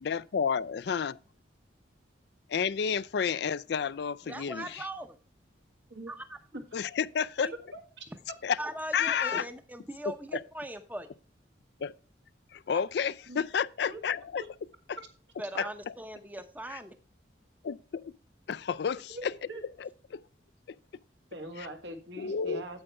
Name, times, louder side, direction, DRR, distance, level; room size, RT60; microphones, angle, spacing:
voice 1, 0.0-1.2 2.5-4.8 6.7-7.5 8.4-8.6 8.9-9.4 10.3-10.4 11.8-11.9 12.5-14.4 14.9-15.0 15.6-15.7 16.7-16.8 17.6-17.8 18.0-18.1 18.5-19.3 19.8-20.2 20.7-20.8 22.2-22.6, left 6 dB, 60° left, 0.4 m, -30 dB
voice 2, 4.3-5.2 6.1-6.4 7.4-7.5 8.6-11.1 12.7-12.8 15.4-16.9, right 1 dB, 10° right, 0.7 m, -40 dB
voice 3, 7.7-8.0 13.3-13.4 13.9-14.0 14.4-14.5 15.0-15.1 15.5-15.7 19.1-19.6 21.3-22.8, right 1 dB, 75° right, 1.7 m, -42 dB
8.9 x 8.0 x 3.4 m
head